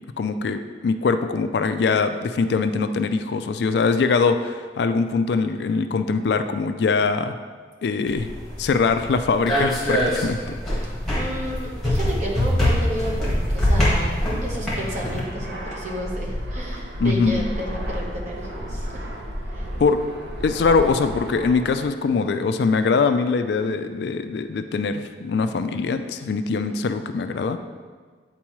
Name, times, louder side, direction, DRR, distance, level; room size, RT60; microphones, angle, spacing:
voice 1, 0.2-7.4 7.8-8.3 8.6-10.4 17.0-17.5 19.8-20.0 20.4-27.6, left 4 dB, 65° left, 9 dB, 0.3 m, -22 dB
sound 1, 8.1-15.2, equal, ahead, 1.5 m, -24 dB
voice 2, 10.8-19.1 19.4-19.7, equal, 40° right, -3 dB, 1.1 m, -32 dB
Fixed-wing aircraft airplane, 13.0-21.8, equal, 70° right, 0.8 m, -32 dB
8.5 x 4.5 x 3.1 m, 1.5 s
head